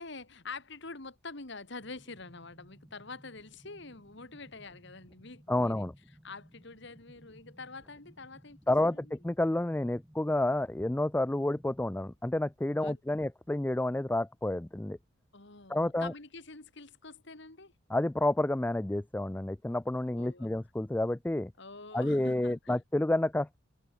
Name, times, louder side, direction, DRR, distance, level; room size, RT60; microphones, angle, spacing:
voice 1, 0.0-5.9 6.2-8.6 8.9-9.2 12.8-13.2 15.3-17.7 20.1-20.6 21.6-22.8, left 3 dB, 60° left, 2.6 m, -46 dB
sound 1, 1.8-11.8, equal, 5° right, 3.4 m, -59 dB
voice 2, 5.5-5.9 8.7-15.0 15.7-16.1 17.9-21.5 21.9-23.6, left 1 dB, 10° left, 0.3 m, -30 dB
head